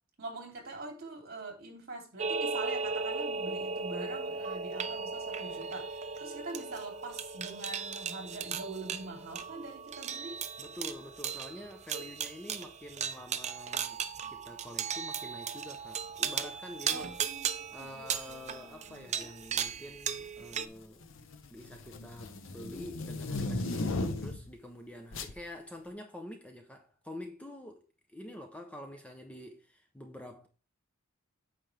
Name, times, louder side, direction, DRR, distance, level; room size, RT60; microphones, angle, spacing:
voice 1, 0.2-10.4 16.9-19.1, right 3 dB, 50° right, 3.1 m, -44 dB
sound 1, 2.2-20.7, right 6 dB, 35° right, 0.6 m, -37 dB
voice 2, 10.6-17.1 17.7-21.0 21.5-27.8 28.1-30.5, left 1 dB, 5° left, 0.8 m, -47 dB
sound 2, 18.2-18.5 19.5-19.9 20.2-24.5 25.1-25.4, left 2 dB, 65° left, 0.8 m, -36 dB
9.2 x 6.1 x 3.4 m
head